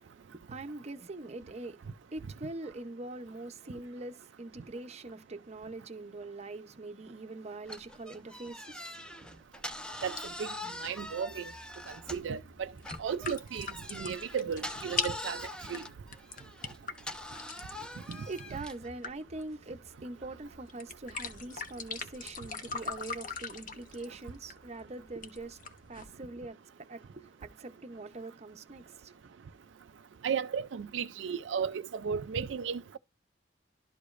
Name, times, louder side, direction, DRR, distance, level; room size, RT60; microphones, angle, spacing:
voice 1, 0.0-9.4 17.6-29.3, right 2 dB, 35° right, 0.7 m, -44 dB
sound 1, 7.7-12.4 12.8-18.9, left 1 dB, 5° left, 0.7 m, -43 dB
voice 2, 10.0-10.5 10.8-11.5 11.9-12.7 13.0-15.9 18.1-18.2 30.2-33.0, right 7 dB, 75° right, 0.4 m, -35 dB
sound 2, 10.1-26.0, left 5 dB, 45° left, 1.1 m, -43 dB
12.5 x 4.9 x 2.5 m
head